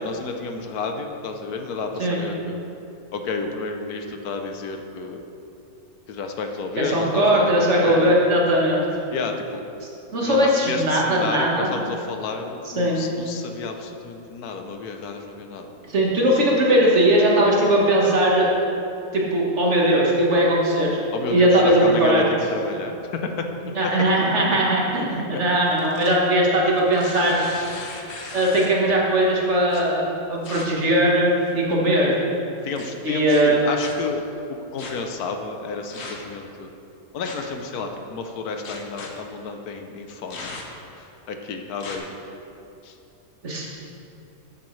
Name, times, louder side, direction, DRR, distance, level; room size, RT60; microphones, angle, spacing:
voice 1, 0.0-2.6 3.1-5.2 6.1-8.2 9.1-9.6 10.2-15.7 21.1-23.9 24.9-25.4 28.2-28.4 32.6-36.7 37.1-40.5 41.0-42.1 42.8-42.9, left 4 dB, 85° left, 5 dB, 1.3 m, -31 dB
voice 2, 6.8-8.8 10.1-11.7 12.7-13.0 15.9-18.7 19.1-20.9 21.3-22.2 23.8-27.4 28.3-32.2 33.0-33.7 43.4-43.7, right 1 dB, 50° right, -3 dB, 1.7 m, -19 dB
sound 1, 25.7-26.2 26.8-28.8 29.7-29.8 30.4-30.6 31.3-31.7 32.8-32.9 33.3-33.9 34.8-34.9 35.9-36.3 37.2-37.5 38.6-39.1 40.3-40.9 41.8-42.0, left 3 dB, 50° left, 1.1 m, -37 dB
11.5 x 8.4 x 3.2 m, 2.8 s
omnidirectional pair, 1.6 m